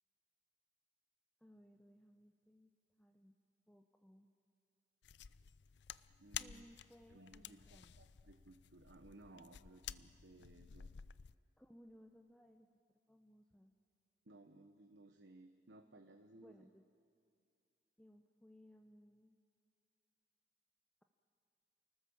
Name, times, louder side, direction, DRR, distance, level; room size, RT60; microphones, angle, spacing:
voice 1, 1.4-2.7 3.0-3.4 3.7-4.3 6.4-7.9 11.6-13.7 16.4-16.9 18.0-19.4, equal, 5° left, 4 dB, 0.8 m, -63 dB
sound 1, 5.0-11.3, left 10 dB, 70° left, 0.5 m, -52 dB
voice 2, 6.1-6.7 7.1-10.9 14.3-16.7, right 2 dB, 75° right, 5 dB, 1.1 m, -60 dB
29.5 x 19.5 x 7.2 m, 2.5 s
head